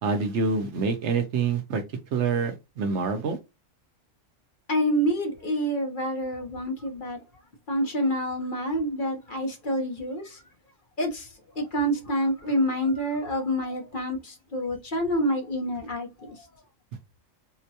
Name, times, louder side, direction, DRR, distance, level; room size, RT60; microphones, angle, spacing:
voice 1, 0.0-1.8 2.1-3.4, right 5 dB, 70° right, 0.9 m, -26 dB
voice 2, 4.7-7.2 7.7-10.4 11.0-16.5, equal, 50° left, 0.8 m, -27 dB
3.9 x 2.2 x 2.7 m
omnidirectional pair, 1.3 m